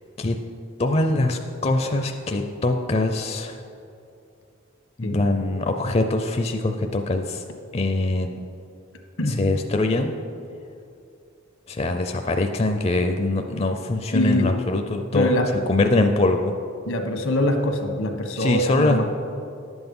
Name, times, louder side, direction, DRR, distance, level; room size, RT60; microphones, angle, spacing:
voice 1, 0.8-3.6 5.0-7.4 7.7-8.3 9.3-10.1 11.7-15.3 15.7-16.5 18.4-19.0, left 2 dB, 30° left, 5 dB, 0.4 m, -23 dB
voice 2, 14.1-14.5 15.1-15.4 16.9-19.0, left 1 dB, 85° left, 4 dB, 1.3 m, -23 dB
11.0 x 7.9 x 5.4 m, 2.6 s
head